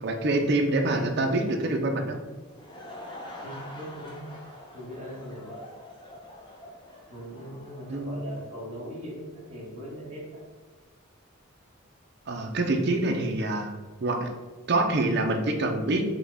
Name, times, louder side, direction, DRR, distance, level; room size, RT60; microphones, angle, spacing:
voice 1, 0.0-2.2 7.9-8.2 12.3-13.7 14.0-14.3 14.7-16.0, right 2 dB, 50° right, 3 dB, 0.5 m, -26 dB
Laughter / Crowd, 2.3-8.6, left 1 dB, 20° left, 0.6 m, -45 dB
voice 2, 3.4-4.3 4.7-5.7 7.1-10.4, equal, 30° right, -6 dB, 1.3 m, -40 dB
5.9 x 2.3 x 3.4 m, 1.3 s
head